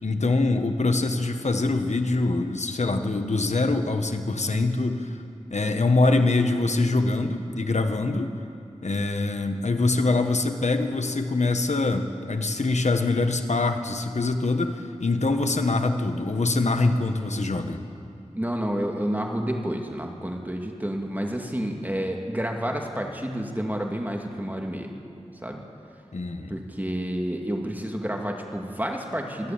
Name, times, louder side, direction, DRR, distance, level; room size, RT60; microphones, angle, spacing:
voice 1, 0.0-5.2 5.5-8.4 8.8-17.8 26.1-26.6, left 3 dB, 80° left, 6 dB, 1.4 m, -24 dB
voice 2, 18.3-24.9 25.4-25.6 26.5-29.5, equal, 15° right, 1 dB, 2.2 m, -29 dB
26.0 x 11.5 x 8.9 m, 2.7 s
wide cardioid pair, 50°, 12 cm